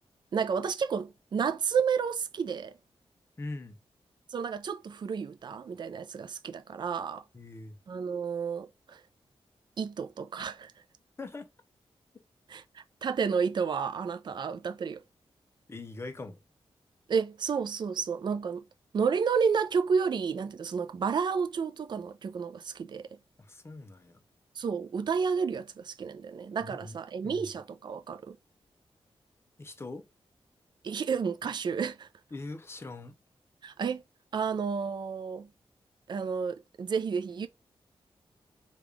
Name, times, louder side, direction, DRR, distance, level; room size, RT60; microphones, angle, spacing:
voice 1, 0.3-2.8 4.3-7.2 7.9-9.0 9.8-10.7 12.5-15.0 17.1-18.7 18.9-23.0 24.6-28.4 30.8-32.1 33.6-34.0 34.3-35.5 36.1-37.5, right 6 dB, 50° right, 0.4 m, -31 dB
voice 2, 3.4-3.8 7.3-7.8 11.2-11.5 15.7-16.4 23.4-24.2 26.6-27.0 27.2-27.5 29.6-30.1 32.3-33.2, left 2 dB, 25° left, 0.6 m, -42 dB
3.4 x 2.3 x 3.3 m
wide cardioid pair, 130°, 10 cm